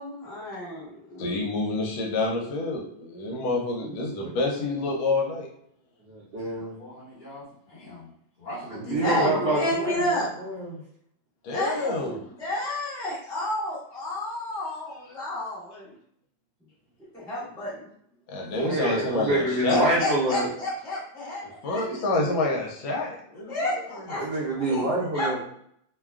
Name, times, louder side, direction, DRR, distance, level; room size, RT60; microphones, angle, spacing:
voice 1, 0.0-1.3 9.0-10.3 11.5-15.9 17.1-17.9 19.7-21.8 23.5-24.2 24.5-25.3, left 1 dB, 5° left, -9 dB, 0.4 m, -31 dB
voice 2, 1.2-5.5 9.0-9.6 11.4-12.2 18.3-19.9 21.6-24.1, left 2 dB, 75° left, 0 dB, 1.3 m, -28 dB
voice 3, 3.8-4.3 5.2-5.3 6.1-6.7 8.7-10.8 18.5-20.5 24.1-25.4, right 1 dB, 70° right, -6 dB, 1.0 m, -27 dB
voice 4, 6.4-8.1 8.4-9.3 9.8-10.0, left 2 dB, 45° left, -8 dB, 1.4 m, -38 dB
3.2 x 2.2 x 2.3 m, 0.69 s
omnidirectional pair, 2.2 m